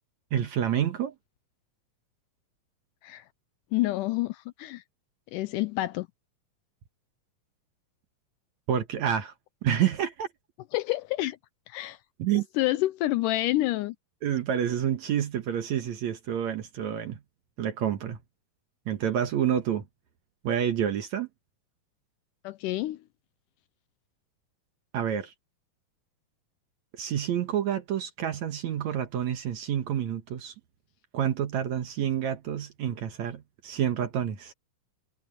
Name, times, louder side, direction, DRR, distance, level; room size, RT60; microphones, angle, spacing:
voice 1, 0.3-1.2 8.7-9.3 9.6-10.3 12.2-12.5 14.2-17.2 17.6-18.2 18.9-19.9 20.4-21.3 24.9-25.3 26.9-30.5 31.1-34.5, right 9 dB, 65° right, 2.3 m, -28 dB
voice 2, 3.7-4.8 5.3-6.1 10.7-11.4 11.7-12.0 12.6-14.0 22.4-23.0, left 17 dB, 80° left, 2.0 m, -28 dB
omnidirectional pair, 4.0 m